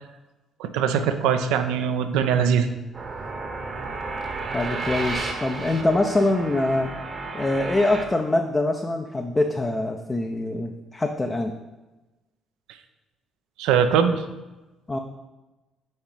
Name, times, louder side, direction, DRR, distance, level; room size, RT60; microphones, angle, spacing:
voice 1, 0.6-2.7 13.6-14.2, right 7 dB, 65° right, 8 dB, 0.4 m, -21 dB
sound 1, 2.9-8.1, right 3 dB, 35° right, 0.9 m, -32 dB
voice 2, 4.5-6.9 7.3-11.5 14.9-15.0, left 2 dB, 20° left, 4 dB, 0.5 m, -24 dB
4.7 x 4.2 x 5.2 m, 1.1 s
figure-of-eight pair, 45°, 0 cm